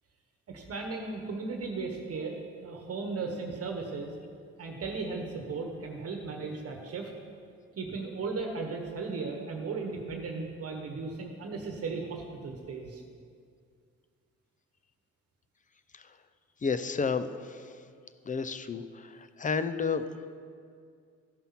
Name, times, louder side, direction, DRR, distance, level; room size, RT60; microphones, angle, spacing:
voice 1, 0.5-4.1 4.6-7.1 7.8-13.0, right 4 dB, 50° right, 2 dB, 1.3 m, -36 dB
voice 2, 16.6-17.8 18.2-20.1, left 5 dB, 25° left, 12 dB, 0.6 m, -32 dB
14.0 x 5.5 x 5.8 m, 2.2 s
cardioid pair, 90°, 30 cm